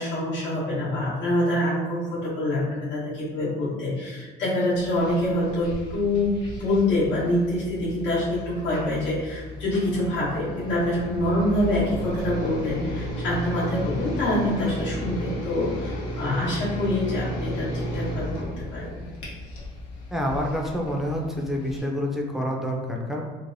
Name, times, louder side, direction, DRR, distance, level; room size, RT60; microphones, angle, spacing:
voice 1, 0.0-19.1, left 1 dB, 60° left, -9 dB, 1.1 m, -26 dB
sound 1, 4.8-21.8, equal, 80° left, 0.8 m, -34 dB
voice 2, 20.1-23.2, equal, ahead, -1 dB, 0.5 m, -27 dB
3.2 x 2.1 x 2.6 m, 1.3 s
supercardioid pair, 70°, 21 cm